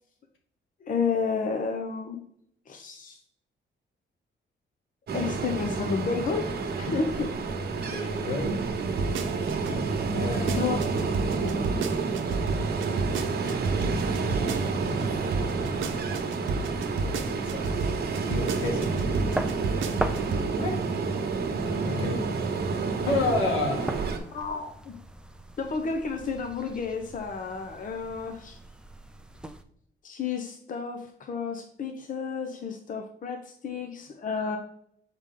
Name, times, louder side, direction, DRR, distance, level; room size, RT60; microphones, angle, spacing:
voice 1, 0.8-2.2 2.7-3.2 5.1-6.5 6.8-7.3 10.5-10.8 24.3-25.0 25.6-28.6 30.0-34.6, left 5 dB, 40° left, 4 dB, 0.8 m, -31 dB
Ocean, 5.1-24.2, right 4 dB, 55° right, 1.1 m, -29 dB
voice 2, 7.7-8.5 9.6-9.8 10.1-10.7 13.8-14.0 14.2-15.0 15.6-17.8 18.3-19.0 20.5-20.8 21.8-22.2 23.0-24.0, left 3 dB, 80° left, 0 dB, 2.0 m, -32 dB
sound 1, 9.0-9.7 10.2-15.1 15.3-20.5 20.8-20.9, right 4 dB, 85° right, 0.8 m, -31 dB
sound 2, 14.7-29.6, right 1 dB, 5° right, 0.4 m, -41 dB
6.6 x 4.9 x 3.8 m, 0.68 s
cardioid pair, 140°, 20 cm